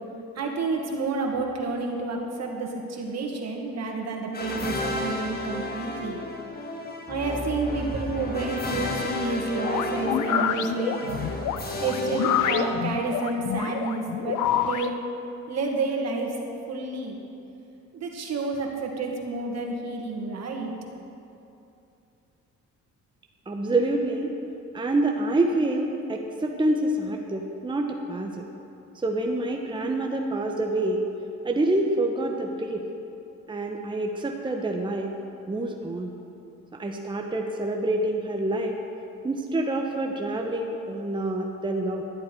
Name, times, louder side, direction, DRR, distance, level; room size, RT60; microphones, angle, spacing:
voice 1, 0.4-6.2 7.1-11.2 11.8-14.4 14.7-15.0 15.5-16.3 16.7-17.2 17.9-20.7, right 3 dB, 60° right, 1 dB, 1.8 m, -29 dB
sound 1, 4.3-13.2, left 2 dB, 30° left, 1.5 m, -33 dB
sound 2, 9.6-14.9, left 10 dB, 80° left, 0.6 m, -27 dB
voice 2, 23.5-24.3 24.7-28.5 28.9-31.0 31.4-32.9 33.5-35.1 35.5-36.1 36.7-38.8 39.2-42.0, right 2 dB, 15° right, 2 dB, 0.9 m, -27 dB
11.5 x 10.5 x 4.5 m, 2.8 s
cardioid pair, 90°, 30 cm